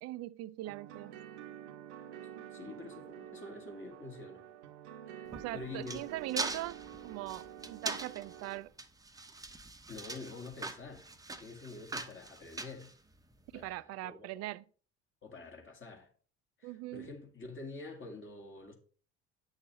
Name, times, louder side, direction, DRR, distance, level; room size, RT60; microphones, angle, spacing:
voice 1, 0.0-1.1 2.4-2.5 5.3-8.7 13.5-14.6 16.6-17.1, right 16 dB, 50° right, 0.5 m, -41 dB
sound 1, 0.6-8.6, right 10 dB, 75° right, 0.9 m, -49 dB
voice 2, 2.5-4.4 5.1-6.0 9.9-11.1 11.4-12.9 13.5-14.5 15.2-16.1 16.6-18.8, left 3 dB, 35° left, 2.2 m, -47 dB
sound 2, 5.3-13.5, right 3 dB, 10° right, 0.8 m, -42 dB
9.4 x 6.4 x 3.1 m
hypercardioid pair, 60°, 34 cm